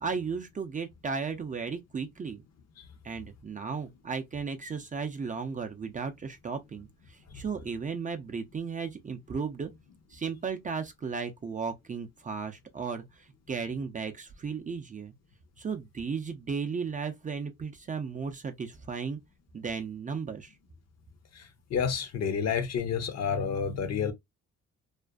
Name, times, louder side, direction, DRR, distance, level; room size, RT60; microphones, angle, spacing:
voice 1, 0.0-2.4 3.0-9.7 10.1-15.1 15.6-19.2 19.5-20.5, right 5 dB, 25° right, 0.4 m, -35 dB
voice 2, 21.3-24.1, left 6 dB, 55° left, 0.7 m, -30 dB
2.4 x 2.3 x 2.2 m
cardioid pair, 90°, 30 cm